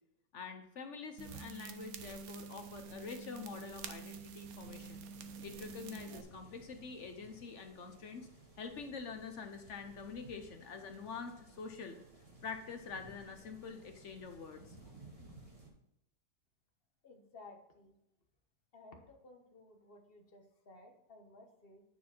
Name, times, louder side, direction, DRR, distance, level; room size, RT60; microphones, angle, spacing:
voice 1, 0.3-5.0 5.4-8.3 8.6-12.0 12.4-14.9, left 5 dB, 65° left, 6 dB, 0.7 m, -46 dB
sound 1, 1.2-6.2, right 5 dB, 65° right, 1.0 m, -48 dB
sound 2, 4.6-15.7, right 2 dB, 20° right, 1.5 m, -58 dB
voice 2, 17.0-17.9 18.7-21.8, left 2 dB, 35° left, 3 dB, 1.2 m, -57 dB
9.1 x 4.6 x 4.3 m, 0.83 s
omnidirectional pair, 2.0 m